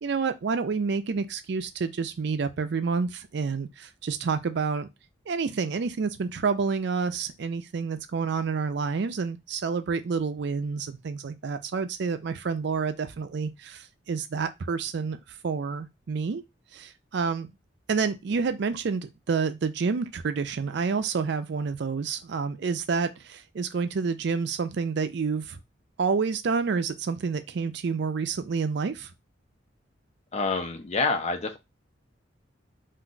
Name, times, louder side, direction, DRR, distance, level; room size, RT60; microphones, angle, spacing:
voice 1, 0.0-4.9 5.3-15.2 15.4-16.4 16.7-17.5 17.9-25.6 26.0-29.1, right 5 dB, 60° right, 0.4 m, -29 dB
voice 2, 30.3-31.6, left 3 dB, 35° left, 0.5 m, -27 dB
2.5 x 2.3 x 3.8 m
head